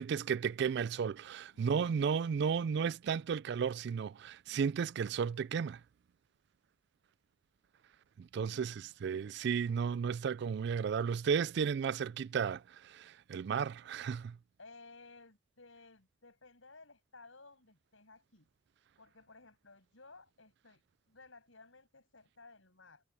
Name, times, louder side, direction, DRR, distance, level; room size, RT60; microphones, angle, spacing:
voice 1, 0.0-5.8 8.2-8.7 9.0-14.4, right 6 dB, 55° right, 0.3 m, -33 dB
voice 2, 1.5-2.1 8.5-9.3 14.6-18.5 19.0-23.0, left 3 dB, 75° left, 7.3 m, -58 dB
head